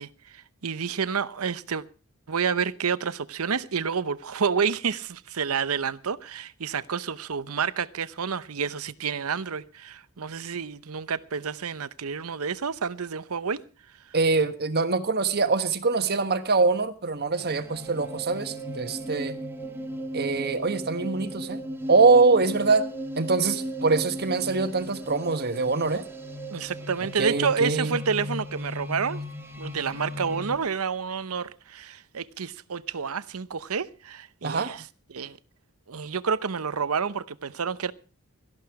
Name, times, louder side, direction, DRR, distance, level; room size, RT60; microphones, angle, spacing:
voice 1, 0.0-1.8 2.3-13.6 26.5-29.2 29.6-34.8 35.1-35.4 35.9-37.9, right 6 dB, 80° right, 0.8 m, -29 dB
voice 2, 14.1-19.4 20.1-21.6 21.9-22.9 23.2-26.1 27.2-28.0 34.4-34.7, right 4 dB, 50° right, 1.4 m, -23 dB
sound 1, 17.4-30.6, right 1 dB, 10° right, 2.0 m, -36 dB
17.5 x 13.5 x 4.8 m
head